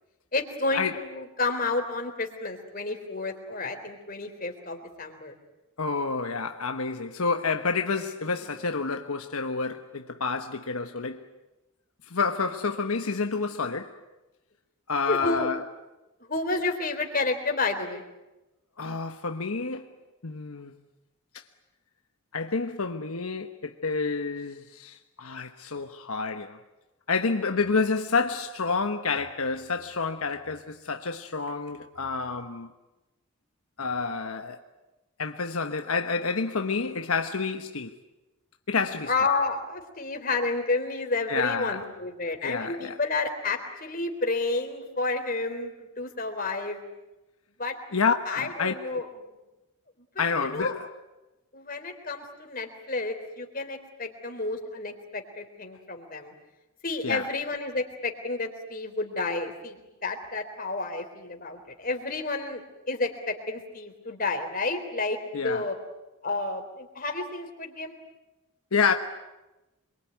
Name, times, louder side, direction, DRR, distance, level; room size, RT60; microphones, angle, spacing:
voice 1, 0.3-5.3 15.1-15.5 16.3-18.0 39.1-46.8 47.6-47.8 48.3-49.3 50.2-50.7 51.5-56.3 56.8-59.8 60.0-62.6 62.9-65.2 65.4-65.8 66.2-67.9, left 3 dB, 40° left, 3.7 m, -30 dB
voice 2, 5.8-11.3 12.1-14.0 14.9-15.6 18.8-19.9 20.2-20.7 22.3-26.6 27.1-32.7 33.8-34.6 35.2-37.9 38.7-39.1 41.3-41.8 42.4-43.0 47.9-49.1 50.2-50.9 57.0-57.3 65.3-65.6 68.7-68.9, left 4 dB, 80° left, 1.2 m, -29 dB
27.5 x 23.0 x 9.3 m
head